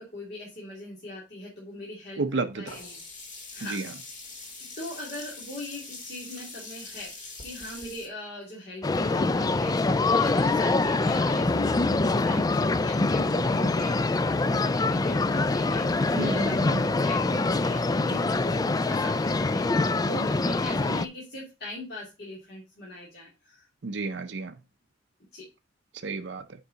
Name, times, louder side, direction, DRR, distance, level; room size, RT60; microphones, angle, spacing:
voice 1, 0.0-3.0 3.5-3.8 4.8-23.7 25.3-25.4, left 1 dB, 55° left, 2.7 m, -40 dB
voice 2, 2.2-2.6 3.7-3.8 16.1-16.8 23.8-24.5 26.0-26.4, right 3 dB, 65° right, 0.6 m, -31 dB
Sink (filling or washing), 2.7-8.1, left 3 dB, 40° left, 1.9 m, -43 dB
sound 1, 8.8-21.1, left 3 dB, 20° left, 0.3 m, -24 dB
8.3 x 4.7 x 3.9 m
head